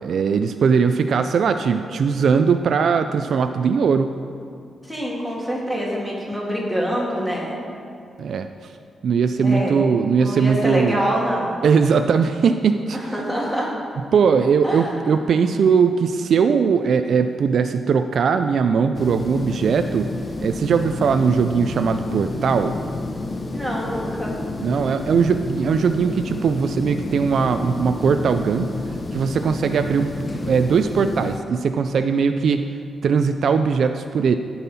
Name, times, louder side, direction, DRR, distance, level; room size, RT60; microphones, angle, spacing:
voice 1, 0.0-4.1 8.2-8.5 9.0-11.0 11.6-13.0 14.1-20.1 20.4-22.8 24.6-28.7 29.1-32.7 33.0-34.4, right 6 dB, 60° right, 8 dB, 0.3 m, -19 dB
voice 2, 4.9-7.6 9.4-9.9 10.2-11.6 12.9-13.7 14.6-15.1 23.5-24.3, equal, ahead, -4 dB, 2.0 m, -25 dB
sound 1, 18.9-31.4, left 2 dB, 25° left, 0.6 m, -30 dB
14.5 x 5.5 x 4.2 m, 2.4 s
wide cardioid pair, 135°, 0 cm